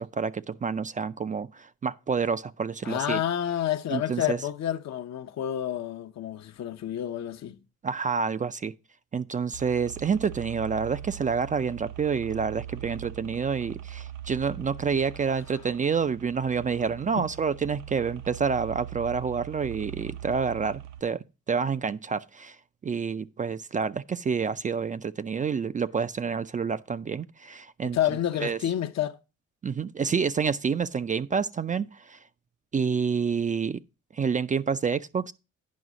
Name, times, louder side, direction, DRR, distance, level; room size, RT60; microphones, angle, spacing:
voice 1, 0.0-3.2 3.9-4.4 7.8-8.7 9.1-22.6 22.8-28.0 28.4-28.6 29.6-32.2 32.7-33.8 34.1-35.3, right 6 dB, 25° right, 0.4 m, -28 dB
voice 2, 2.8-7.6 27.9-29.2, left 11 dB, 60° left, 0.8 m, -29 dB
sound 1, 9.5-21.0, right 11 dB, 85° right, 0.8 m, -42 dB
9.5 x 5.4 x 4.9 m
cardioid pair, 90°, 30 cm